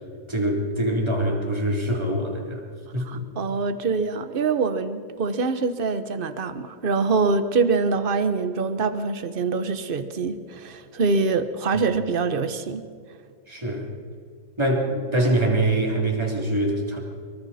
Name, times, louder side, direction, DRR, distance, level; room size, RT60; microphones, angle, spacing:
voice 1, 0.3-2.6 2.9-3.2 13.5-13.9 14.6-17.0, right 1 dB, 15° right, -1 dB, 3.4 m, -24 dB
voice 2, 3.0-12.8, right 4 dB, 35° right, 10 dB, 1.1 m, -24 dB
25.5 x 24.0 x 4.3 m, 2.1 s
omnidirectional pair, 1.9 m